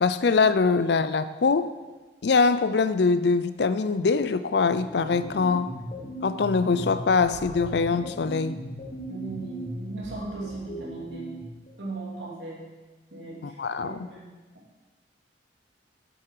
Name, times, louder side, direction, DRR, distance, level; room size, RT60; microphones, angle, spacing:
voice 1, 0.0-1.7 2.2-5.7 6.2-8.5 13.4-14.0, left 4 dB, 60° left, 13 dB, 0.4 m, -23 dB
sound 1, 4.6-11.7, right 1 dB, 35° left, 1.2 m, -38 dB
voice 2, 9.1-11.4 11.8-12.7 13.1-14.3, right 3 dB, 80° right, -4 dB, 2.7 m, -38 dB
8.7 x 7.8 x 4.7 m, 1.2 s
head